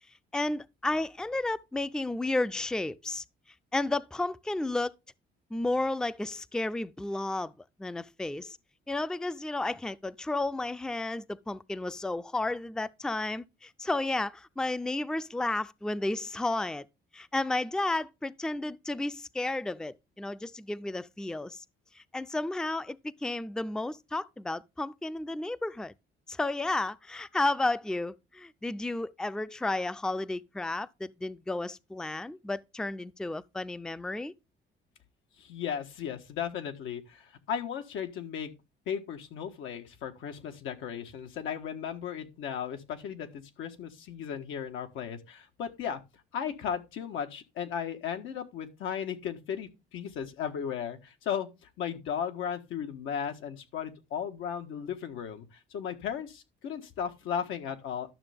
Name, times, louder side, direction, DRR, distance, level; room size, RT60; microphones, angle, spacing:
voice 1, 0.3-3.2 3.7-4.9 5.5-7.5 7.8-8.6 8.9-16.9 17.1-21.6 22.0-25.9 26.3-34.3, left 2 dB, 5° left, 0.4 m, -32 dB
voice 2, 35.4-38.5 38.9-46.0 46.3-51.5 51.8-58.1, left 8 dB, 90° left, 1.6 m, -36 dB
12.0 x 6.6 x 3.5 m
cardioid pair, 90°, 20 cm